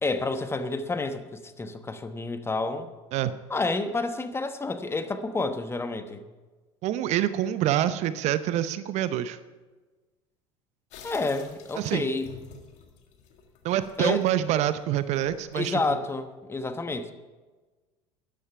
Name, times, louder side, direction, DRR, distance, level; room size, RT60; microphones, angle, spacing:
voice 1, 0.0-2.9 3.5-6.3 11.0-12.3 14.0-14.2 15.5-17.1, left 3 dB, 15° left, 9 dB, 1.1 m, -29 dB
voice 2, 6.8-9.4 11.8-12.1 13.6-16.0, right 12 dB, 50° right, 14 dB, 0.7 m, -26 dB
sound 1, 10.9-16.0, left 6 dB, 55° left, 1.9 m, -50 dB
12.5 x 10.5 x 5.9 m, 1.3 s
hypercardioid pair, 75°, 14 cm